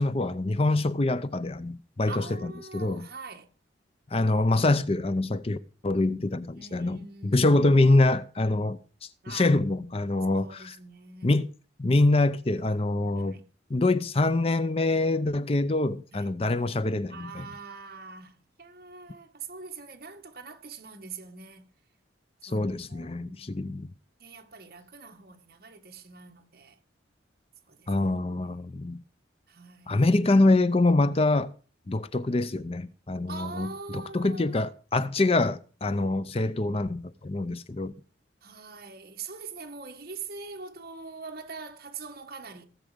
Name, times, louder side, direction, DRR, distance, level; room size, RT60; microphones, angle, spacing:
voice 1, 0.0-2.2 2.7-3.1 4.1-5.6 5.8-8.8 9.3-10.7 11.2-11.5 11.8-13.4 13.7-17.5 22.5-23.9 27.9-29.0 29.9-31.5 31.9-37.9, left 2 dB, 30° left, 0.6 m, -25 dB
voice 2, 2.1-3.5 6.4-7.6 9.2-9.6 10.3-11.4 13.2-13.4 16.1-16.4 17.1-21.7 22.5-23.6 24.2-26.8 27.7-27.9 28.4-28.8 29.5-30.0 33.3-34.7 38.4-42.6, right 4 dB, 55° right, 1.8 m, -43 dB
17.0 x 7.4 x 5.2 m
head